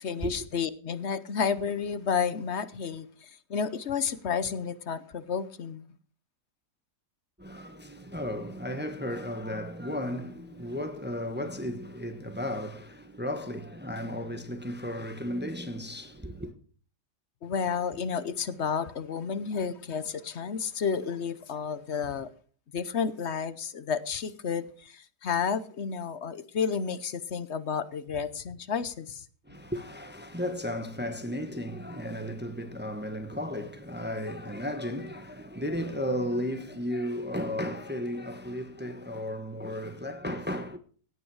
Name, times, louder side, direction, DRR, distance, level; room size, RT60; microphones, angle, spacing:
voice 1, 0.0-5.8 17.4-22.3 22.7-29.2, left 6 dB, 50° left, 1.0 m, -31 dB
voice 2, 7.4-16.5 29.5-40.8, equal, 5° right, 1.0 m, -34 dB
17.0 x 8.9 x 4.9 m
omnidirectional pair, 1.8 m